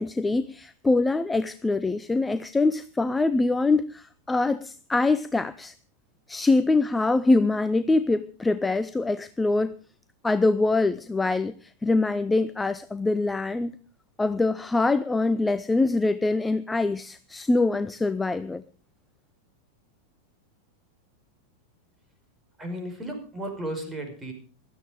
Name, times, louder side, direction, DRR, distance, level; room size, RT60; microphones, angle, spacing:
voice 1, 0.0-5.7 6.3-9.7 10.2-13.8 14.2-18.6, left 3 dB, 10° left, 14 dB, 0.6 m, -24 dB
voice 2, 22.6-24.3, right 1 dB, 15° right, 4 dB, 5.4 m, -34 dB
16.0 x 13.0 x 5.0 m, 0.39 s
figure-of-eight pair, 90°, 0 cm